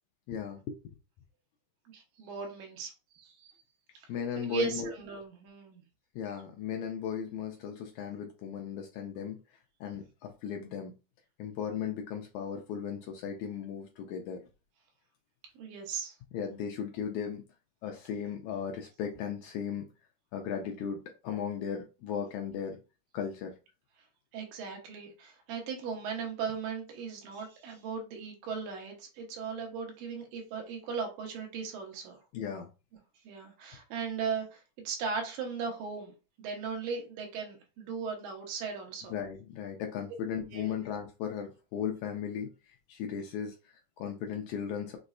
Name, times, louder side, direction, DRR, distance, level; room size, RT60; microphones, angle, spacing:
voice 1, 0.3-0.8 4.1-4.9 6.2-9.4 9.8-10.9 11.4-14.4 16.3-17.4 17.8-19.9 20.3-22.8 23.1-23.5 32.3-32.7 39.1-45.0, left 7 dB, 80° left, 3 dB, 1.7 m, -36 dB
voice 2, 1.9-3.5 4.0-4.1 4.5-5.8 15.6-16.2 24.3-32.2 33.2-39.1 40.5-40.8, right 5 dB, 90° right, 2 dB, 2.8 m, -38 dB
6.0 x 3.1 x 2.6 m, 0.31 s
omnidirectional pair, 3.8 m